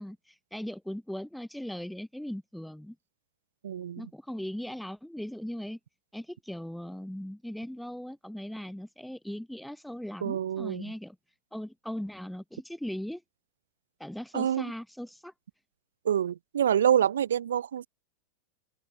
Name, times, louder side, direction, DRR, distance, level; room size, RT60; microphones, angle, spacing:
voice 1, 0.0-3.0 4.0-5.8 6.1-11.2 11.5-13.2 14.0-15.3, equal, ahead, 1.1 m, -39 dB
voice 2, 3.6-4.0 10.2-10.9 14.3-14.7 16.0-17.9, right 9 dB, 65° right, 0.8 m, -26 dB
open air
figure-of-eight pair, 90°, 0 cm